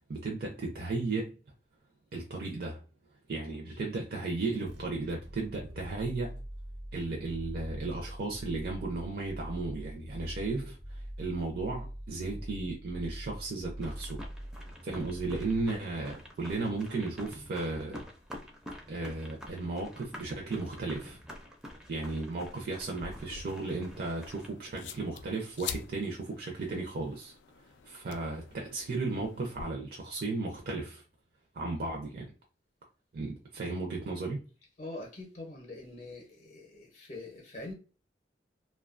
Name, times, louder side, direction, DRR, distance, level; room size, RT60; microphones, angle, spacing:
voice 1, 0.1-1.4 2.1-2.8 3.3-6.3 6.9-14.2 14.8-18.0 18.9-21.2 21.9-27.3 27.8-31.0 31.5-32.3 33.1-34.4, right 3 dB, 60° right, 0.5 m, -35 dB
sound 1, 4.6-16.1, equal, 85° right, 1.1 m, -43 dB
sound 2, 13.8-24.5, equal, 5° right, 0.4 m, -48 dB
sound 3, 22.8-29.6, left 7 dB, 85° left, 0.3 m, -46 dB
voice 2, 34.8-37.7, left 2 dB, 40° left, 0.6 m, -44 dB
2.7 x 2.2 x 2.4 m
head